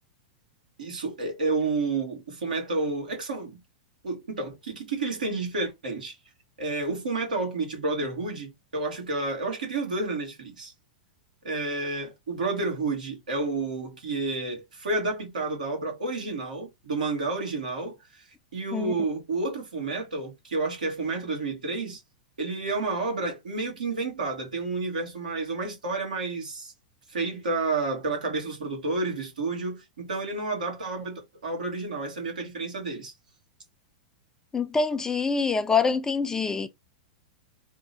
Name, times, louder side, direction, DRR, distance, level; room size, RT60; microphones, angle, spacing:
voice 1, 0.8-3.6 4.0-6.2 6.6-10.7 11.4-18.3 18.5-22.0 22.4-26.7 27.1-33.1, right 3 dB, 85° right, 1.8 m, -30 dB
voice 2, 34.5-36.7, left 5 dB, 15° left, 0.5 m, -25 dB
3.5 x 2.2 x 3.9 m
hypercardioid pair, 110°, 4 cm